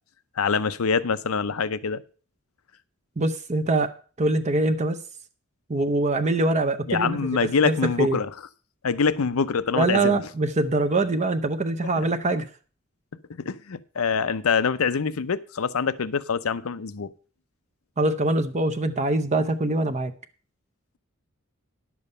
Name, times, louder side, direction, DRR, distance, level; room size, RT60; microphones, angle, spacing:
voice 1, 0.4-2.0 6.9-8.3 8.8-10.3 12.0-12.1 13.4-17.1, left 5 dB, 80° left, 0.6 m, -25 dB
voice 2, 3.2-3.9 4.2-5.0 5.7-7.2 7.6-8.2 9.7-12.5 18.0-20.1, right 2 dB, 30° right, 0.6 m, -23 dB
11.0 x 7.1 x 5.4 m
head